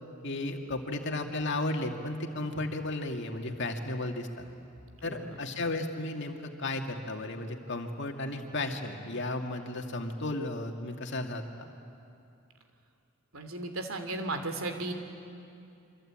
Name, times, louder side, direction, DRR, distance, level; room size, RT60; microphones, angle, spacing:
voice 1, 0.2-4.4 5.0-11.7, left 2 dB, 60° left, 4 dB, 2.3 m, -34 dB
voice 2, 5.0-5.4 13.3-14.9, right 2 dB, 80° right, 6 dB, 2.8 m, -35 dB
27.5 x 24.5 x 8.9 m, 2.6 s
head